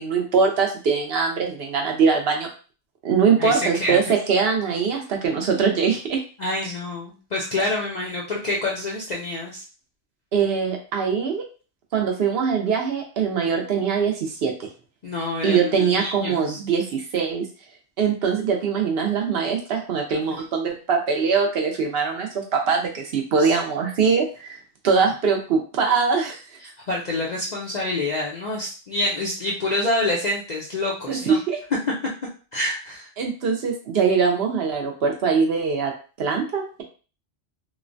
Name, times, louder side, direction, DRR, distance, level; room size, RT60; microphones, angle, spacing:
voice 1, 0.0-2.5 3.0-6.2 6.6-6.7 10.3-11.4 11.9-14.5 15.4-17.4 18.0-24.6 24.8-26.4 31.1-31.6 33.2-35.9 36.2-36.8, right 5 dB, 65° right, 1 dB, 0.7 m, -22 dB
voice 2, 3.4-4.0 6.4-9.6 15.0-16.6 20.3-20.4 23.4-23.5 26.6-31.4 32.5-33.1, left 2 dB, 55° left, -4 dB, 0.5 m, -27 dB
3.1 x 2.1 x 2.5 m, 0.36 s
omnidirectional pair, 1.2 m